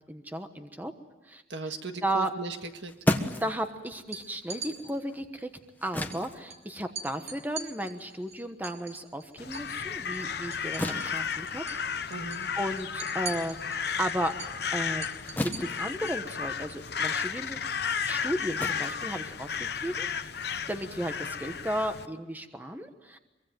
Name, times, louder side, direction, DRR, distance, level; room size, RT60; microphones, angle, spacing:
voice 1, 0.1-0.9 1.2-1.4 2.0-2.3 3.4-5.5 5.8-11.6 11.9-12.1 12.6-14.4 14.7-15.1 15.4-17.6 18.0-23.2, right 1 dB, 10° right, 7 dB, 1.2 m, -34 dB
voice 2, 1.5-2.9 12.1-12.5, right 3 dB, 70° right, 6 dB, 1.8 m, -37 dB
sound 1, 2.5-9.3 9.7-19.9, left 1 dB, 10° left, 1.3 m, -37 dB
sound 2, 4.0-4.7 6.1-6.2 6.5-6.6 7.0-9.7 10.0-11.2 11.5-11.8 12.1-16.2, right 5 dB, 35° right, 4.7 m, -42 dB
Crow, 9.4-22.1, left 6 dB, 60° left, 0.9 m, -33 dB
24.5 x 23.5 x 9.2 m, 1.0 s
head